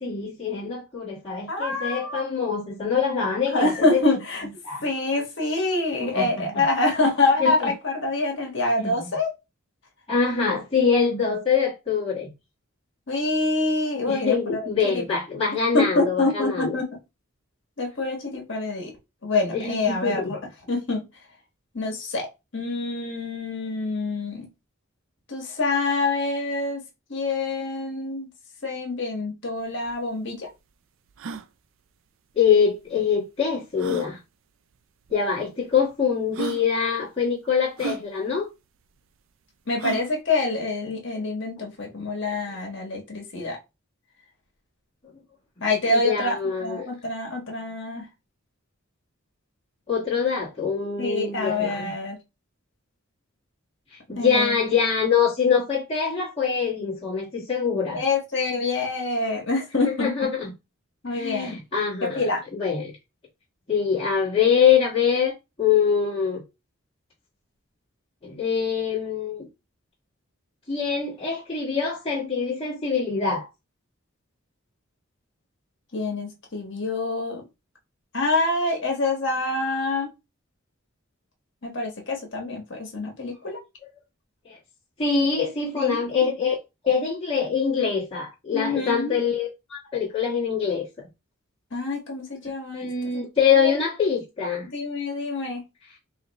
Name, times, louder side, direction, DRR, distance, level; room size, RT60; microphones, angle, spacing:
voice 1, 0.0-4.0 4.6-4.8 6.0-6.6 7.4-7.7 8.8-9.1 10.1-12.3 14.1-16.8 19.5-20.3 32.3-34.2 35.1-38.5 45.9-46.9 49.9-51.9 53.9-58.0 59.9-60.5 61.1-62.2 62.5-62.9 63.7-65.3 65.6-66.4 68.2-69.5 70.7-73.5 84.4-84.6 85.0-86.5 86.8-91.1 92.7-94.7, left 6 dB, 25° left, 1.5 m, -24 dB
voice 2, 1.5-2.2 3.5-9.3 13.1-15.0 15.7-16.9 17.8-18.9 19.2-20.4 20.7-21.0 21.7-22.3 22.5-24.5 25.3-26.8 27.1-28.3 28.6-30.5 39.7-43.6 45.6-48.1 51.0-52.2 54.1-54.5 57.9-60.3 61.0-61.6 62.0-62.4 75.9-77.5 78.1-80.1 81.6-83.6 85.7-86.0 88.5-89.1 91.7-92.8 93.1-93.7 94.7-95.6, left 2 dB, 60° left, 1.4 m, -26 dB
sound 1, 29.6-29.7 29.9-30.0 30.5-30.6 31.1-31.5 32.8-32.9 33.8-34.1 35.1-35.2 35.9-36.0 36.3-36.6 37.8-38.0 39.8-40.1, right 5 dB, 70° right, 0.4 m, -33 dB
4.9 x 2.7 x 3.1 m
head